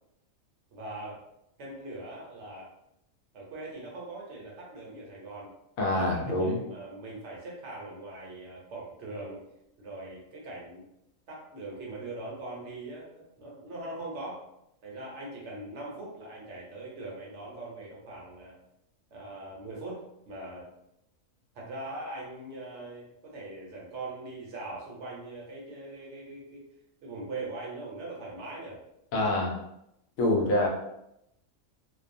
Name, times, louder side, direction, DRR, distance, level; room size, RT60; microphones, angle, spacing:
voice 1, 0.7-1.2 1.6-2.7 3.3-5.5 5.8-9.4 9.8-10.9 11.3-14.4 14.8-18.6 19.1-20.7 21.5-26.6 27.0-28.8 29.2-29.3, right 2 dB, 60° right, -3 dB, 0.9 m, -41 dB
voice 2, 5.8-6.6 29.1-29.6 30.2-30.7, left 1 dB, 75° left, -1 dB, 1.0 m, -25 dB
2.5 x 2.2 x 2.5 m, 0.83 s
omnidirectional pair, 1.5 m